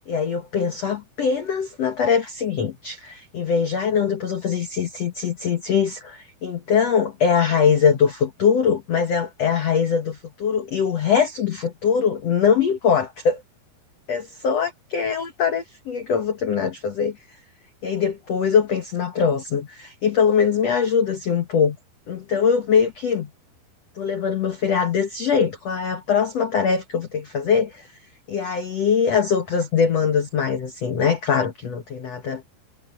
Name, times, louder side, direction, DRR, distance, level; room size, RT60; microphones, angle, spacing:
voice 1, 0.1-13.4 14.1-17.2 17.8-21.8 22.1-23.3 23.9-27.9 28.3-32.4, left 6 dB, 75° left, 1.5 m, -22 dB
omnidirectional pair, 5.2 m